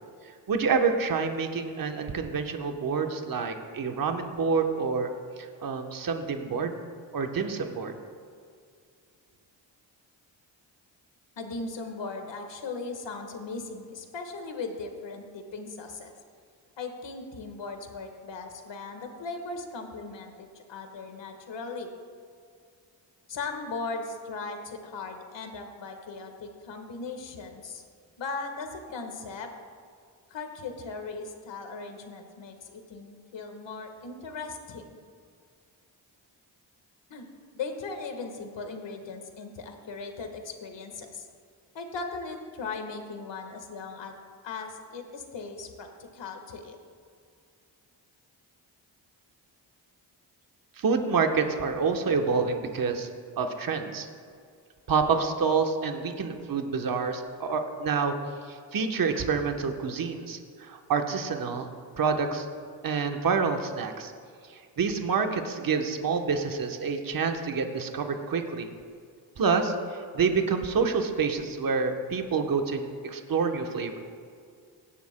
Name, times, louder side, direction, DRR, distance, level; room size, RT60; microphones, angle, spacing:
voice 1, 0.5-5.1 5.4-6.7 7.1-8.0 50.8-53.1 53.4-54.1 54.9-58.1 58.5-61.7 62.0-62.5 62.8-64.1 64.5-68.7 69.4-74.0, right 5 dB, 50° right, 5 dB, 1.1 m, -27 dB
voice 2, 11.4-16.1 16.8-21.9 23.3-27.8 28.2-29.5 30.3-34.8 37.1-37.3 37.5-41.3 41.7-44.1 44.4-46.8, left 4 dB, 70° left, 5 dB, 1.5 m, -38 dB
17.0 x 10.0 x 2.2 m, 2.2 s
cardioid pair, 60°, 44 cm